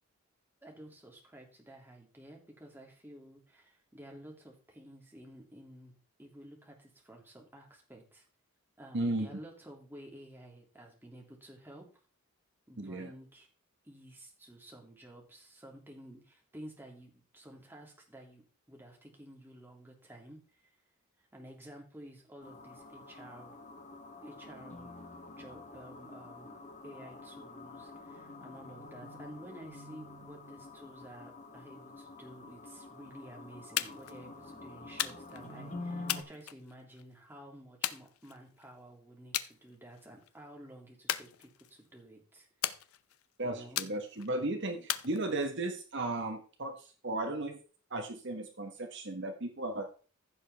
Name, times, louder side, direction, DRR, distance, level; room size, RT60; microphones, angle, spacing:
voice 1, 0.6-5.9 6.2-8.2 8.8-11.8 12.7-13.5 13.8-20.7 21.3-23.5 24.2-24.9 25.3-26.6 26.8-42.5 43.4-43.8, right 1 dB, 10° right, 0 dB, 2.5 m, -52 dB
voice 2, 8.9-9.3 12.8-13.1 43.4-47.6 47.9-49.9, right 2 dB, 55° right, 5 dB, 1.3 m, -35 dB
sound 1, 22.4-36.2, left 2 dB, 35° left, 1.4 m, -48 dB
sound 2, 33.8-34.2 35.0-35.5 36.1-37.0 37.8-38.6 39.3-39.5 39.9-40.3 41.1-41.9 42.6-43.3 43.8-44.3 44.9-45.7, left 12 dB, 75° left, 0.6 m, -36 dB
15.0 x 6.8 x 3.4 m, 0.38 s
head